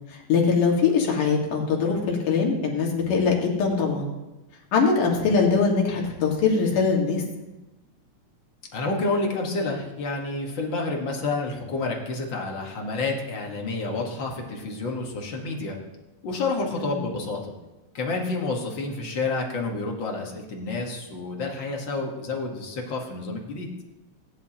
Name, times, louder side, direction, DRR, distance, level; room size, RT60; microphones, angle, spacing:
voice 1, 0.3-4.1 4.7-7.2 16.8-17.0, left 5 dB, 85° left, -1 dB, 3.5 m, -22 dB
voice 2, 8.7-15.8 16.2-17.5 17.9-23.7, left 3 dB, 45° left, 0 dB, 1.9 m, -29 dB
18.0 x 10.5 x 2.9 m, 1.0 s
omnidirectional pair, 3.6 m